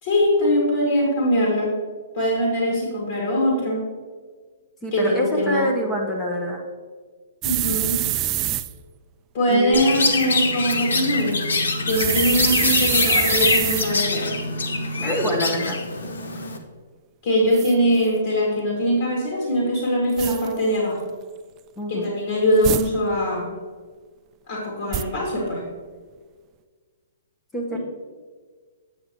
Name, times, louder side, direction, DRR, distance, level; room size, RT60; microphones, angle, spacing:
voice 1, 0.0-1.7 2.1-3.9 4.9-5.7 7.4-8.1 9.3-11.4 11.8-14.3 17.2-21.0 21.9-23.5 24.5-25.6 27.7-27.8, equal, 50° left, -3 dB, 2.2 m, -22 dB
voice 2, 4.8-6.6 9.5-9.8 15.0-15.8 21.8-22.1 27.5-27.8, equal, 15° left, 0 dB, 0.9 m, -25 dB
sound 1, 7.4-8.7 11.9-13.9 17.5-17.7 20.2-20.5 22.6-22.9 24.9-25.0, right 13 dB, 25° right, 0.3 m, -25 dB
Chirp tweet, 9.7-16.6, left 3 dB, 85° left, 0.9 m, -24 dB
8.5 x 6.5 x 3.0 m, 1.5 s
hypercardioid pair, 145°, 0 cm